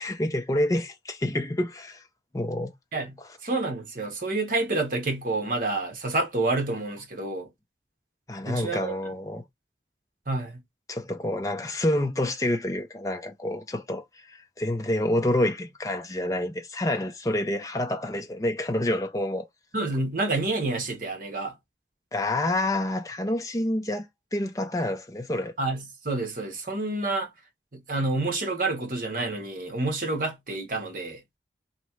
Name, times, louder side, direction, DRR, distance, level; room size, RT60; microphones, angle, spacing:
voice 1, 0.0-2.0 2.3-2.7 3.2-3.3 8.3-9.4 10.9-19.5 22.1-24.1 24.3-25.5, left 1 dB, 20° left, 0.5 m, -28 dB
voice 2, 3.4-7.5 8.5-8.9 10.3-10.6 19.7-21.5 25.6-27.3 27.7-31.2, right 2 dB, 50° right, 1.2 m, -28 dB
3.1 x 2.9 x 4.4 m
head